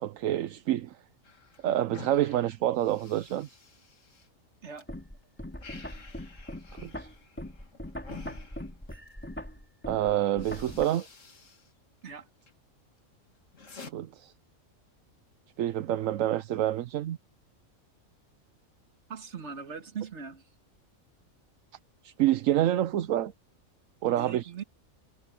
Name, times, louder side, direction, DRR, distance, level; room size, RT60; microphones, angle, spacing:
voice 1, 0.0-1.0 1.6-3.5 6.8-7.1 9.9-11.1 13.9-14.3 15.6-17.2 22.0-23.3 24.0-24.5, right 12 dB, 75° right, 1.0 m, -27 dB
sound 1, 1.2-4.9 5.2-9.2 9.9-10.0 10.3-11.7 12.0-12.6 13.0-13.9, left 5 dB, 65° left, 2.4 m, -51 dB
sound 2, 4.9-10.9, left 1 dB, 10° left, 2.9 m, -40 dB
voice 2, 19.1-20.4 24.1-24.6, right 6 dB, 55° right, 1.9 m, -40 dB
omnidirectional pair, 1.4 m